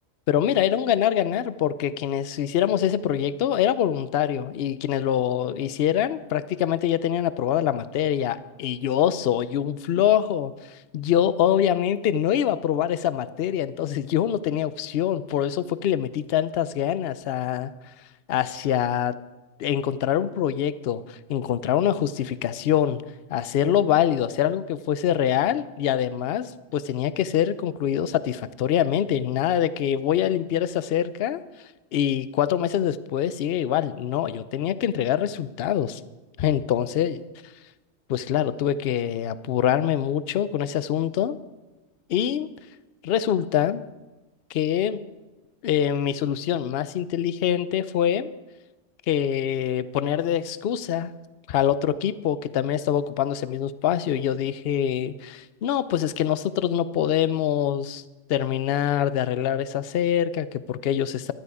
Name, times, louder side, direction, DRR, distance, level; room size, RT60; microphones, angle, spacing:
voice 1, 0.3-17.7 18.3-19.2 19.6-23.0 23.3-31.4 31.9-36.0 36.4-37.2 38.1-41.4 42.1-42.5 43.0-43.8 44.5-45.0 45.6-48.3 49.1-51.1 51.5-58.0 58.3-61.3, left 10 dB, 60° left, 15 dB, 0.7 m, -24 dB
15.5 x 12.5 x 4.8 m, 1.2 s
omnidirectional pair, 1.4 m